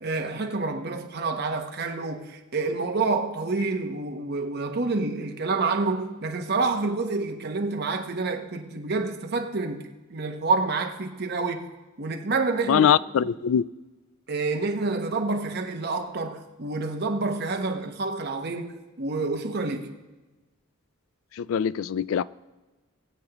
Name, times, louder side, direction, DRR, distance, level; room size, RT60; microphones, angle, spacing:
voice 1, 0.0-11.7 12.0-12.9 13.2-13.3 14.3-19.9, right 3 dB, 50° right, 0.9 m, -28 dB
voice 2, 12.7-13.7 21.4-22.2, left 8 dB, 65° left, 0.3 m, -22 dB
20.0 x 8.0 x 2.9 m
head